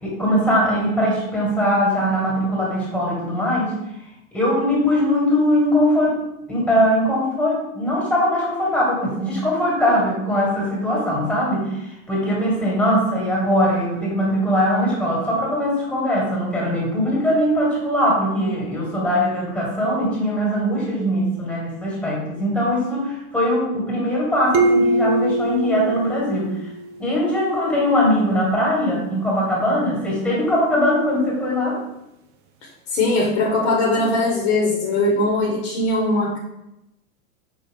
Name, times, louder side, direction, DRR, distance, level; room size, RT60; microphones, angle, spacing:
voice 1, 0.0-3.8 4.3-6.2 6.5-26.7 27.0-31.8, equal, 5° left, -5 dB, 1.4 m, -21 dB
sound 1, 24.5-27.1, right 1 dB, 35° right, 0.4 m, -22 dB
voice 2, 32.9-36.4, left 2 dB, 55° left, -2 dB, 1.1 m, -20 dB
4.5 x 2.3 x 3.4 m, 0.87 s
hypercardioid pair, 95°, 43 cm